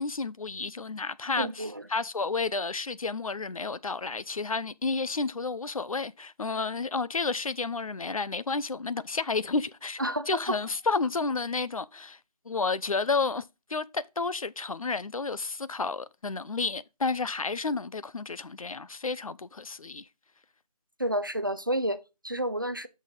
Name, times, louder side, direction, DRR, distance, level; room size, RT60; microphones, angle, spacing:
voice 1, 0.0-10.0 10.3-12.2 12.5-13.4 13.7-20.1, left 4 dB, 60° left, 0.6 m, -31 dB
voice 2, 1.4-1.9 10.0-10.6 21.0-22.9, right 1 dB, 30° right, 0.4 m, -30 dB
6.3 x 6.2 x 5.2 m
figure-of-eight pair, 170°, 20 cm